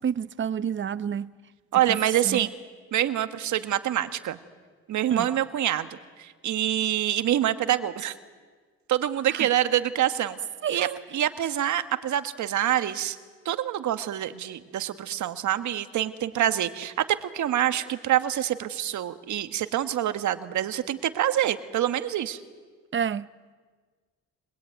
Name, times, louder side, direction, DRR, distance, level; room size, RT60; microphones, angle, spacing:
voice 1, 0.0-1.3 1.9-2.0 2.2-2.4 5.1-5.3 9.3-9.5 10.6-11.0 22.9-23.3, right 8 dB, 40° right, 0.7 m, -29 dB
voice 2, 1.7-2.5 2.9-4.4 4.9-8.2 8.9-10.4 10.7-13.2 13.4-16.9 17.2-22.4, right 11 dB, 70° right, 1.5 m, -26 dB
24.5 x 20.5 x 9.2 m
cardioid pair, 90°, 30 cm